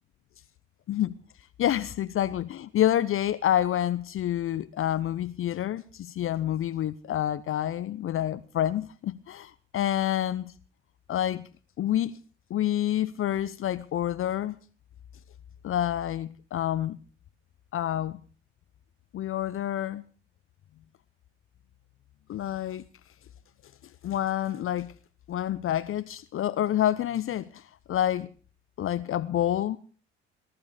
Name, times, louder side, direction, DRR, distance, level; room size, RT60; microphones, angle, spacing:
voice 1, 1.6-10.5 11.1-11.4 11.8-12.2 12.5-14.6 15.6-17.0 17.7-18.2 19.1-20.0 22.3-22.8 24.0-24.9 25.3-28.3 28.8-29.8, left 11 dB, 40° left, 0.8 m, -28 dB
19.0 x 12.0 x 5.1 m
figure-of-eight pair, 55°, 33 cm